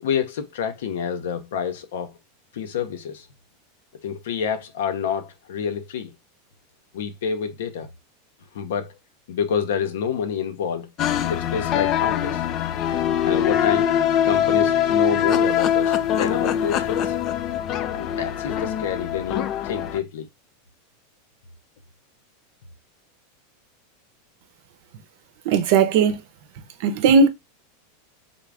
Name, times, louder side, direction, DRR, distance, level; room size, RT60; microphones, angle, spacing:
voice 1, 0.0-2.2 2.5-3.3 4.0-6.1 6.9-7.9 8.5-8.9 9.3-10.9 11.3-12.4 13.2-13.9 14.2-17.1 17.9-20.3, left 7 dB, 80° left, 0.7 m, -28 dB
sound 1, 11.0-20.0, left 9 dB, 40° left, 0.4 m, -23 dB
voice 2, 25.5-26.2 26.8-27.3, right 5 dB, 65° right, 0.7 m, -17 dB
3.7 x 2.4 x 3.3 m
hypercardioid pair, 120°, 0 cm